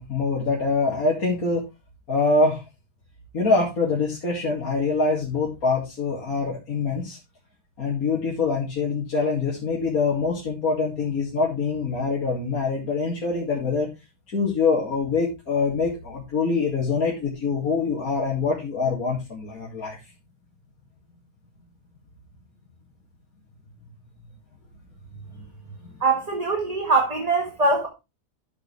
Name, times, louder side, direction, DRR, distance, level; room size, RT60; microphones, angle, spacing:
voice 1, 0.0-1.6 2.1-2.6 3.3-7.2 7.8-13.9 14.3-20.0 25.3-25.4, left 4 dB, 60° left, 2.8 m, -24 dB
voice 2, 26.0-27.9, right 3 dB, 25° right, 1.6 m, -22 dB
12.5 x 6.6 x 3.3 m
omnidirectional pair, 1.7 m